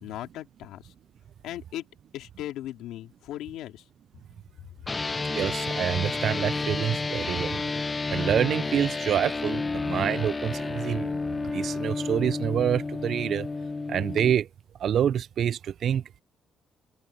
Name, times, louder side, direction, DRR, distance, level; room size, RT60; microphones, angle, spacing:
voice 1, 0.0-0.9 1.4-1.8 2.1-3.8, left 13 dB, 90° left, 2.8 m, -37 dB
sound 1, 4.9-14.3, left 3 dB, 25° left, 0.8 m, -31 dB
voice 2, 5.3-7.7 8.1-11.1 11.5-13.5 13.9-14.5 14.8-16.2, right 9 dB, 65° right, 0.3 m, -27 dB
cardioid pair, 90°, 0 cm